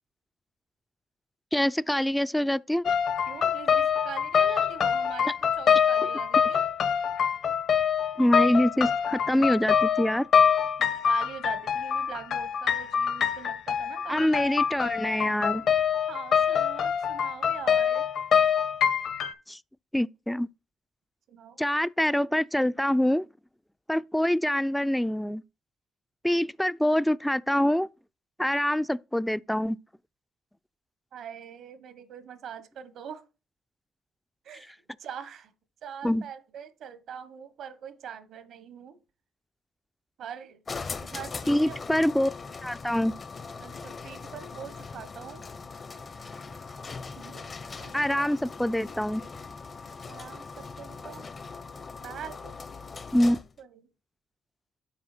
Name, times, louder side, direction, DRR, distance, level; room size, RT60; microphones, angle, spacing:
voice 1, 1.5-2.8 8.2-10.3 14.1-15.6 19.5-19.6 19.9-20.5 21.6-23.3 23.9-25.4 26.2-27.9 28.4-29.8 36.0-36.2 41.5-42.3 42.6-43.1 47.9-49.2 53.1-53.4, left 1 dB, 5° left, 0.4 m, -25 dB
sound 1, 2.9-19.3, left 7 dB, 65° left, 1.1 m, -25 dB
voice 2, 3.3-6.6 11.1-14.5 16.1-18.1 21.3-21.6 31.1-33.2 34.4-35.5 35.8-39.0 40.2-40.6 41.0-41.8 43.6-45.5 47.2-48.3 50.1-51.3 52.0-52.6 53.3-53.8, right 8 dB, 75° right, 1.2 m, -43 dB
sound 2, 40.7-53.6, left 4 dB, 35° left, 0.7 m, -40 dB
8.5 x 4.9 x 4.3 m
cardioid pair, 90°, 0 cm